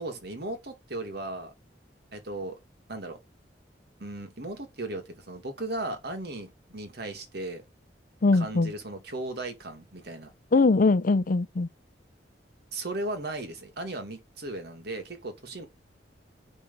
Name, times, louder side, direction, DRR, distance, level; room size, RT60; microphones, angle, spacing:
voice 1, 0.0-1.5 2.1-2.6 2.9-3.2 4.0-7.6 8.3-10.3 12.7-15.7, right 2 dB, 65° right, 2.1 m, -36 dB
voice 2, 8.2-8.7 10.5-11.7, left 3 dB, 50° left, 0.5 m, -21 dB
10.0 x 3.5 x 5.3 m
head